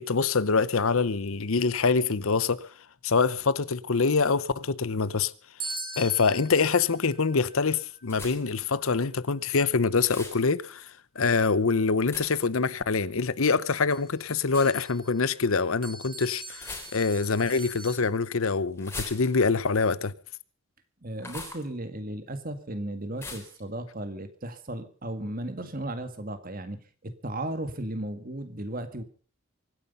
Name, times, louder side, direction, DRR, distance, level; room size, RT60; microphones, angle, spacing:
voice 1, 0.0-2.7 3.0-5.3 6.0-10.9 11.2-20.1, left 4 dB, 70° left, 0.8 m, -25 dB
sound 1, 5.6-9.4 13.4-13.5 13.9-18.0, right 3 dB, 25° right, 4.0 m, -43 dB
sound 2, 8.1-8.6 10.0-10.4 12.1-12.5 14.5-14.7 16.5-17.3 18.8-19.6 21.2-21.7 23.2-23.6, left 3 dB, 10° left, 3.7 m, -40 dB
voice 2, 21.0-29.0, right 1 dB, 40° right, 1.9 m, -35 dB
24.0 x 9.9 x 5.4 m
head